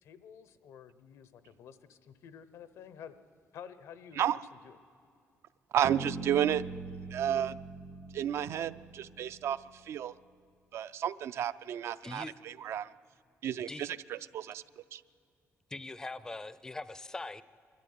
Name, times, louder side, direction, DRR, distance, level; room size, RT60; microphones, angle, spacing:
voice 1, 0.0-3.1 3.5-4.4 4.6-4.8, left 8 dB, 85° left, 13 dB, 0.9 m, -50 dB
voice 2, 5.7-6.6 7.1-7.6 8.1-9.6 9.9-10.1 10.7-12.9 13.4-14.6 14.9-15.0, right 10 dB, 65° right, 14 dB, 0.4 m, -32 dB
Bass guitar, 5.8-9.8, right 4 dB, 85° right, 1.8 m, -42 dB
voice 3, 12.0-12.3 13.7-13.9 15.7-17.4, left 2 dB, 15° left, 16 dB, 0.4 m, -41 dB
23.0 x 13.5 x 9.4 m, 2.3 s
cardioid pair, 150°, 5 cm